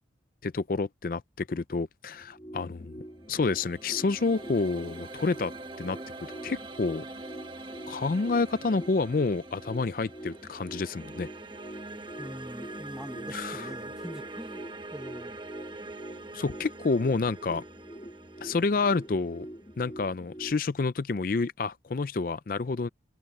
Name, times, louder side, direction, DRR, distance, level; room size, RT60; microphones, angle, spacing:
voice 1, 0.4-3.0 3.3-5.5 5.8-6.0 6.4-7.0 7.9-11.3 13.3-13.7 16.3-17.6 18.4-19.5 19.8-22.9, left 4 dB, 50° left, 0.4 m, -29 dB
sound 1, 2.1-20.5, right 1 dB, 25° left, 2.3 m, -45 dB
sound 2, 3.1-20.2, right 2 dB, 25° right, 1.1 m, -44 dB
voice 2, 12.2-14.6 14.9-15.4, equal, 5° right, 0.9 m, -43 dB
head